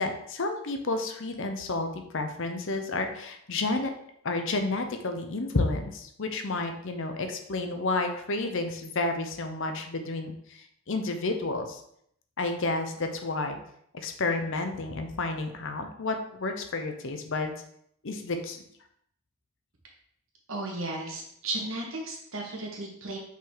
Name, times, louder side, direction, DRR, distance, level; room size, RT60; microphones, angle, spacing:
voice 1, 0.0-3.9 4.2-10.3 10.9-11.8 12.4-13.6 13.9-17.5 18.0-18.6, left 2 dB, 55° left, 6 dB, 0.7 m, -30 dB
voice 2, 20.5-23.2, right 2 dB, 60° right, -1 dB, 1.5 m, -34 dB
5.6 x 4.0 x 4.6 m, 0.69 s
head